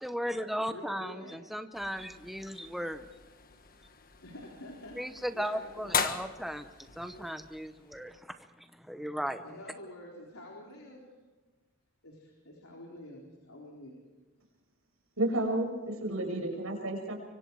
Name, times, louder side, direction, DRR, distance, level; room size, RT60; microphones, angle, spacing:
voice 1, 0.0-3.1 5.0-6.7 7.0-9.4, equal, ahead, 8 dB, 0.8 m, -36 dB
voice 2, 0.7-1.4 4.2-5.0 5.3-6.0 9.4-11.1 12.0-13.9 16.3-16.4, left 1 dB, 85° left, -2 dB, 4.1 m, -47 dB
sound 1, 1.7-8.2, left 6 dB, 45° left, 1.4 m, -39 dB
voice 3, 15.2-17.2, right 1 dB, 75° right, 2 dB, 6.4 m, -31 dB
25.0 x 24.5 x 4.7 m, 1.2 s
head